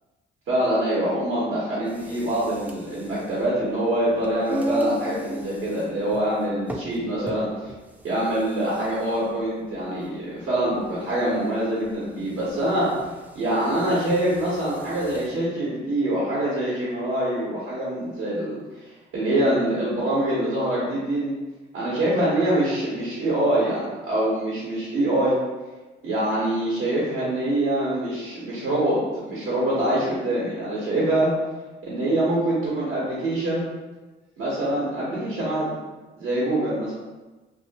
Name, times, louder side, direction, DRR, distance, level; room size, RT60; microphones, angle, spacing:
voice 1, 0.5-7.7 8.0-13.0 13.3-21.3 21.7-25.4 26.0-31.3 31.8-33.7 34.4-35.7 36.2-36.9, right 1 dB, 85° right, -8 dB, 1.1 m, -25 dB
sound 1, 1.8-15.4, equal, 10° right, 0.3 m, -36 dB
2.9 x 2.8 x 2.8 m, 1.2 s
cardioid pair, 90°, 20 cm